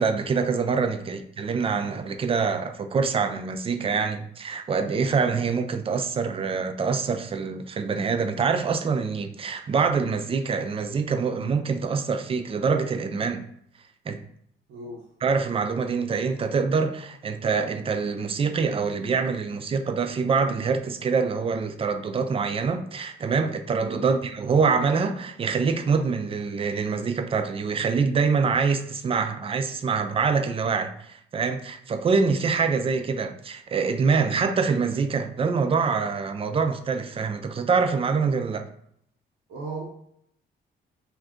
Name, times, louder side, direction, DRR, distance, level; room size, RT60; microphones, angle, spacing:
voice 1, 0.0-13.4 14.1-14.2 15.2-38.6, right 5 dB, 30° right, 0.3 m, -25 dB
voice 2, 14.7-15.0 23.9-24.1 39.5-39.8, right 3 dB, 80° right, 0.7 m, -36 dB
2.6 x 2.4 x 3.5 m
cardioid pair, 90°, 20 cm